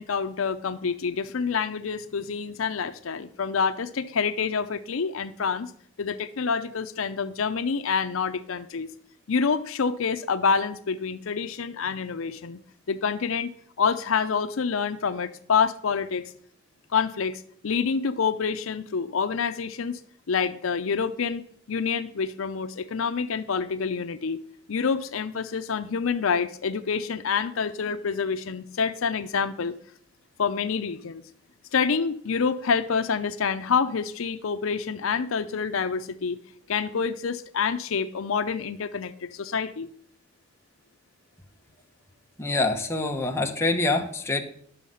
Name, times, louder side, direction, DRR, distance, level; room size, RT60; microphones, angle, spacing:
voice 1, 0.0-5.7 6.0-8.9 9.3-12.6 12.9-13.5 13.8-16.2 16.9-20.0 20.3-24.4 24.7-29.7 30.4-31.2 31.7-36.4 36.7-39.9, left 5 dB, 75° left, 10 dB, 0.6 m, -27 dB
voice 2, 42.4-44.4, left 2 dB, 15° left, 2 dB, 1.0 m, -25 dB
11.0 x 6.4 x 5.5 m, 0.62 s
head